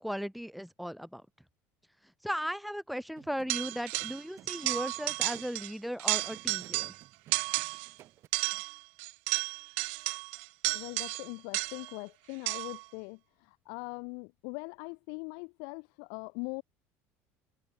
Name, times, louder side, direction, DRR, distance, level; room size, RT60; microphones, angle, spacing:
voice 1, 0.0-1.2 2.2-6.9, equal, ahead, 0.3 m, -37 dB
sound 1, 3.2-8.3, right 13 dB, 45° right, 4.2 m, -56 dB
sound 2, 3.5-4.2 4.5-5.7 6.0-7.0 7.3-7.9 8.3-11.9 12.5-12.8, right 40 dB or more, 85° right, 0.6 m, -33 dB
voice 2, 10.7-16.6, left 39 dB, 80° left, 2.8 m, -41 dB
open air
cardioid pair, 160°, 6 cm